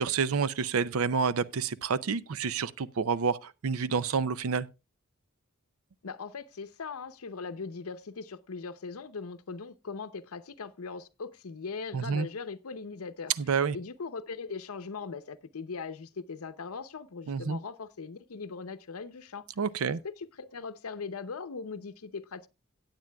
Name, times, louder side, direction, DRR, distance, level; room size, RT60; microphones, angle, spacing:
voice 1, 0.0-4.7 11.9-12.3 13.4-13.8 17.3-17.6 19.6-20.0, right 5 dB, 70° right, 0.5 m, -29 dB
voice 2, 6.0-13.3 13.7-19.4 19.9-22.5, left 4 dB, 80° left, 0.7 m, -40 dB
17.0 x 9.0 x 2.3 m
head